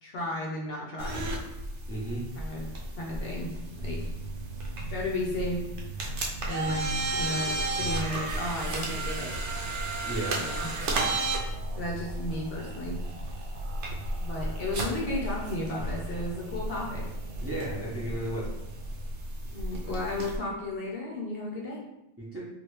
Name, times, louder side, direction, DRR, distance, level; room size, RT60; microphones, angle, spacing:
voice 1, 0.0-1.2 2.3-2.7 3.0-3.5 3.8-4.0 4.9-5.6 6.5-6.9 7.2-9.4 10.4-10.7 11.7-13.0 14.2-17.0 19.5-21.8, left 1 dB, 65° left, -2 dB, 0.7 m, -34 dB
sound 1, 1.0-20.4, right 2 dB, 80° right, 0.9 m, -34 dB
voice 2, 1.9-2.3 10.0-10.4 17.4-18.5 22.2-22.4, right 1 dB, 15° right, -8 dB, 0.7 m, -34 dB
sound 2, 3.2-19.1, right 4 dB, 60° right, 0.5 m, -44 dB
3.0 x 2.4 x 3.0 m, 0.89 s
omnidirectional pair, 1.2 m